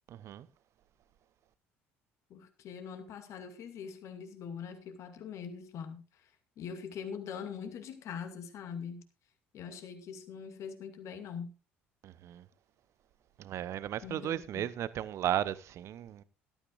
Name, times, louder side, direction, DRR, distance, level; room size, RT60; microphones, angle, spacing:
voice 1, 2.3-9.0 9.5-11.5 14.0-14.7, left 7 dB, 55° left, 2.3 m, -43 dB
voice 2, 12.0-12.4 13.4-16.2, right 11 dB, 50° right, 0.8 m, -35 dB
17.5 x 13.0 x 2.5 m
figure-of-eight pair, 55°, 6 cm